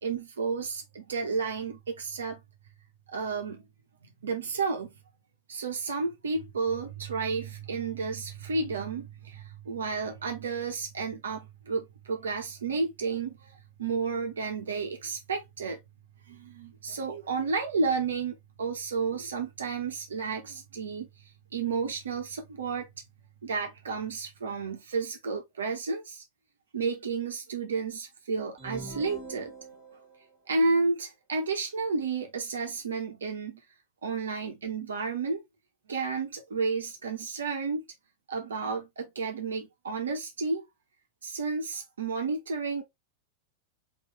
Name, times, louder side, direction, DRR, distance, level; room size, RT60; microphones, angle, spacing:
voice 1, 0.0-2.4 3.1-3.6 4.2-4.9 5.5-15.8 16.3-21.1 21.5-22.9 23.4-26.2 26.7-29.5 30.5-33.6 34.0-35.4 35.9-37.8 38.3-40.6 41.2-42.8, right 4 dB, 70° right, 0.8 m, -31 dB
sound 1, 28.6-30.2, right 2 dB, 25° right, 1.7 m, -43 dB
4.2 x 3.2 x 3.0 m
figure-of-eight pair, 90°, 0 cm